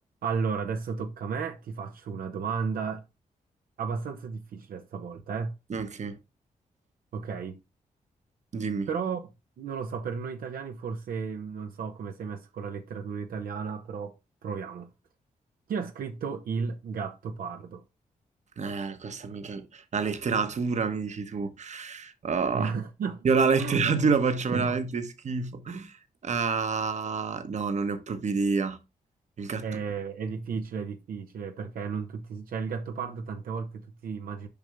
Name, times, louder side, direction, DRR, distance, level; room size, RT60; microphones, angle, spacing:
voice 1, 0.2-3.0 3.8-5.5 7.1-7.6 8.9-9.2 9.6-14.1 14.4-14.9 15.7-17.8 22.5-23.3 23.6-23.8 24.5-24.7 29.6-34.5, right 5 dB, 80° right, 0.9 m, -33 dB
voice 2, 5.7-6.2 8.5-8.9 18.6-22.7 23.2-28.8 29.4-29.7, right 5 dB, 55° right, 1.1 m, -28 dB
7.1 x 5.4 x 3.5 m
cardioid pair, 75°, 15 cm